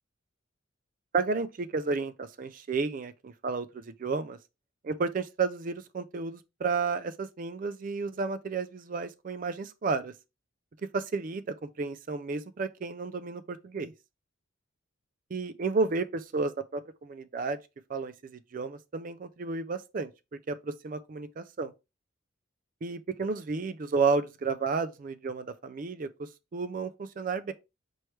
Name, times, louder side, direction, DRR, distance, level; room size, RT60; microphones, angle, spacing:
voice 1, 1.1-4.4 4.8-10.1 10.8-13.9 15.3-17.6 17.9-20.1 20.5-21.7 22.8-27.5, right 4 dB, 40° right, 0.3 m, -32 dB
4.5 x 3.1 x 3.2 m
head